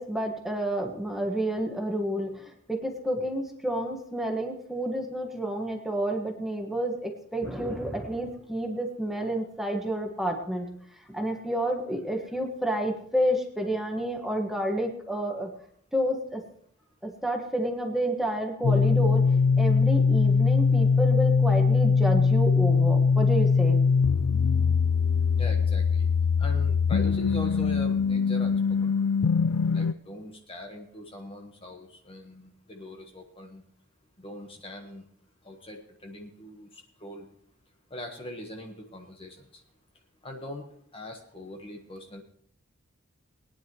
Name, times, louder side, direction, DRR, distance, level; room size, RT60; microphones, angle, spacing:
voice 1, 0.0-10.7 11.1-15.5 15.9-16.4 17.0-19.2 19.6-23.8, right 1 dB, ahead, 2 dB, 1.6 m, -30 dB
sound 1, 18.6-29.9, left 5 dB, 75° left, 0.4 m, -22 dB
voice 2, 25.3-26.1 26.4-29.1 29.7-33.6 34.2-35.1 35.4-37.3 37.9-39.6 40.2-40.7 40.9-42.2, left 1 dB, 25° left, 2 dB, 1.3 m, -41 dB
21.0 x 10.0 x 3.1 m, 0.67 s
head